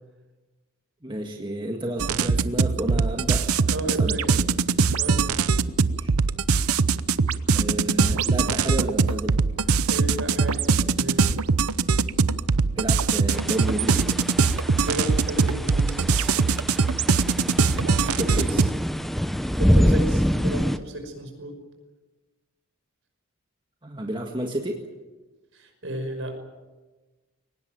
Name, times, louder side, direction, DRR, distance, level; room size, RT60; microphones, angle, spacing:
voice 1, 1.0-3.5 3.8-4.2 6.0-6.1 7.5-9.5 12.8-14.1 18.2-18.7 23.8-24.8, right 1 dB, 20° right, 2 dB, 1.7 m, -31 dB
sound 1, 2.0-18.7, right 4 dB, 85° right, 0.8 m, -22 dB
voice 2, 3.7-4.4 5.0-5.2 9.8-10.7 10.9-11.2 14.8-16.0 19.6-21.6 25.5-26.4, right 1 dB, 60° right, 5 dB, 5.6 m, -33 dB
sound 2, 13.3-20.8, equal, ahead, 0.7 m, -26 dB
23.0 x 19.0 x 9.2 m, 1.2 s
head